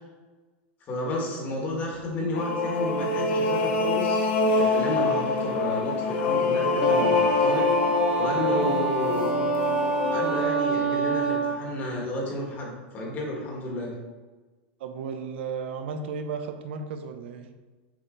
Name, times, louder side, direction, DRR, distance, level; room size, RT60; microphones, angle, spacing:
voice 1, 0.9-7.6 8.2-9.3 10.1-13.9, left 1 dB, 30° left, -2 dB, 2.0 m, -31 dB
sound 1, 2.3-10.4, left 3 dB, 85° left, 1.4 m, -25 dB
Wind instrument woodwind instrument, 6.8-11.7, right 4 dB, 15° right, 0.9 m, -26 dB
voice 2, 14.8-17.5, right 5 dB, 75° right, 7 dB, 0.8 m, -34 dB
7.3 x 4.4 x 4.0 m, 1.3 s
supercardioid pair, 145°, 6 cm